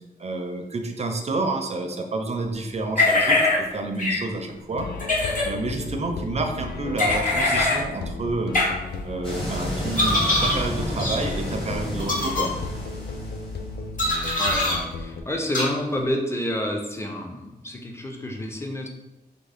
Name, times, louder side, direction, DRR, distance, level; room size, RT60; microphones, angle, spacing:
voice 1, 0.2-3.4 3.7-4.9 5.4-8.6 9.0-12.5, right 2 dB, 40° right, 4 dB, 0.5 m, -29 dB
sound 1, 3.0-3.6 4.0-4.2 5.0-5.5 7.0-7.8 8.5-8.7 10.0-10.6 11.0-11.2 12.0-12.4 14.0-14.8 15.5-15.7, left 2 dB, 55° left, 0.9 m, -22 dB
sound 2, 4.7-15.2, left 3 dB, 80° left, 0.4 m, -34 dB
sound 3, 9.2-13.7, equal, 30° left, 1.2 m, -32 dB
voice 2, 14.4-18.9, left 1 dB, 15° left, 1 dB, 0.5 m, -29 dB
3.6 x 2.0 x 3.4 m, 0.98 s
wide cardioid pair, 90°, 17 cm